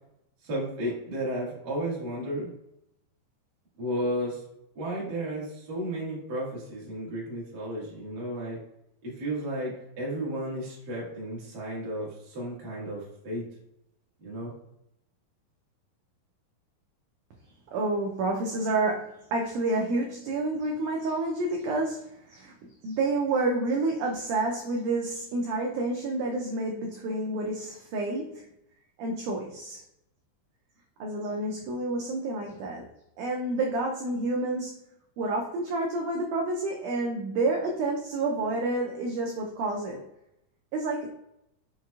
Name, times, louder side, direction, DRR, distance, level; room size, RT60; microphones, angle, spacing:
voice 1, 0.4-2.5 3.8-4.4 4.7-8.6 9.0-13.4 14.2-14.5, right 1 dB, 70° right, -5 dB, 0.9 m, -33 dB
voice 2, 17.7-28.5 29.0-29.8 31.0-32.9 33.2-34.8 35.2-40.0 40.7-41.1, right 2 dB, 85° right, 0 dB, 1.8 m, -29 dB
5.6 x 3.0 x 2.3 m, 0.82 s
omnidirectional pair, 4.2 m